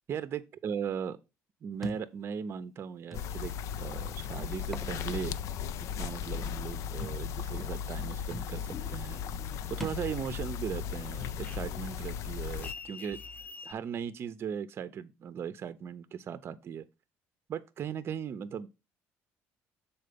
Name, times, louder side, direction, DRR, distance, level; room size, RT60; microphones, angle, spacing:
voice 1, 0.1-1.2 1.6-5.4 5.8-13.2 13.6-16.9 17.5-18.7, right 7 dB, 50° right, 0.6 m, -38 dB
Thump thud, 1.8-2.1 3.1-3.2 4.6-4.9 5.4-5.5 7.0-7.2 8.0-8.1 8.3-8.5 9.8-10.1, equal, 5° left, 0.9 m, -40 dB
sound 1, 3.1-12.7, left 8 dB, 70° left, 0.4 m, -37 dB
sound 2, 8.6-10.0 10.3-13.7, left 5 dB, 30° left, 0.8 m, -46 dB
6.6 x 4.3 x 5.1 m
cardioid pair, 100°, 5 cm